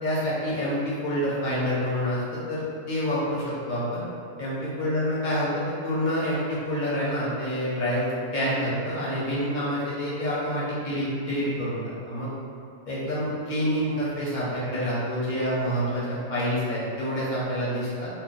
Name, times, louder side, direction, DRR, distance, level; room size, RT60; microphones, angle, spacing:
voice 1, 0.0-4.0 4.4-12.3 12.8-18.1, equal, 40° left, -8 dB, 0.9 m, -27 dB
2.8 x 2.1 x 4.0 m, 2.4 s
omnidirectional pair, 1.3 m